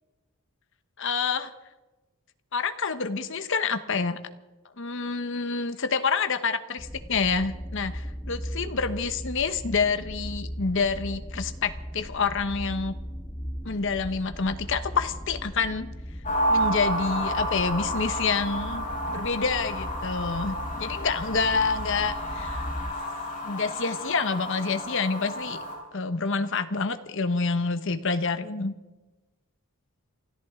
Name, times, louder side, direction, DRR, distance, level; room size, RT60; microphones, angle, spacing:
voice 1, 1.0-1.5 2.5-4.2 4.8-12.9 13.6-15.9 16.5-22.6 23.4-25.6 25.9-28.7, left 4 dB, 55° left, 10 dB, 1.0 m, -28 dB
sound 1, 6.8-22.9, equal, 15° left, 0.9 m, -38 dB
sound 2, 16.2-25.7, equal, 35° left, 5.3 m, -31 dB
28.0 x 14.0 x 3.7 m, 1.1 s
head